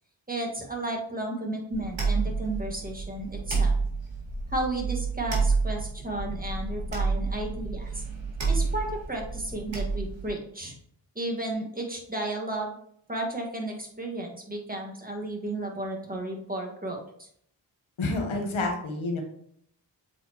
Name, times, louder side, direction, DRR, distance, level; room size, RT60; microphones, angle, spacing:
voice 1, 0.3-3.7 4.5-8.0 8.5-10.7 11.2-12.8 13.1-17.3, right 2 dB, 20° right, 0 dB, 1.7 m, -33 dB
sound 1, 1.7-10.3, right 4 dB, 70° right, 2.2 m, -29 dB
voice 2, 18.0-19.2, left 2 dB, 85° left, 2 dB, 1.3 m, -28 dB
7.5 x 4.3 x 3.0 m, 0.68 s
cardioid pair, 45°, 47 cm